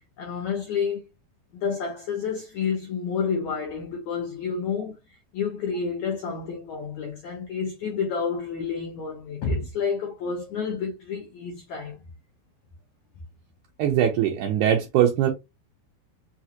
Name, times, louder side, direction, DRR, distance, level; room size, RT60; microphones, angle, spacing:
voice 1, 0.2-1.1 1.5-12.0, left 5 dB, 85° left, 1.6 m, -29 dB
voice 2, 13.8-15.3, right 10 dB, 85° right, 1.8 m, -21 dB
6.0 x 2.5 x 2.8 m
omnidirectional pair, 4.5 m